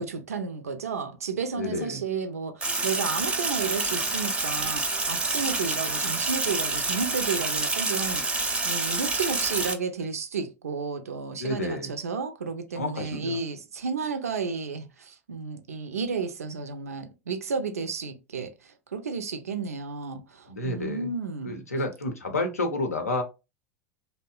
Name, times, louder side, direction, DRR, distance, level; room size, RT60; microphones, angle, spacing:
voice 1, 0.0-8.3 8.6-21.5, right 5 dB, 80° right, 0.4 m, -32 dB
voice 2, 1.6-2.0 11.3-11.9 12.7-13.4 20.5-21.1 21.4-23.2, left 2 dB, 85° left, 0.6 m, -30 dB
Sink (filling or washing), 2.6-9.7, right 3 dB, 15° right, 0.5 m, -28 dB
2.6 x 2.1 x 2.3 m
figure-of-eight pair, 85°, 8 cm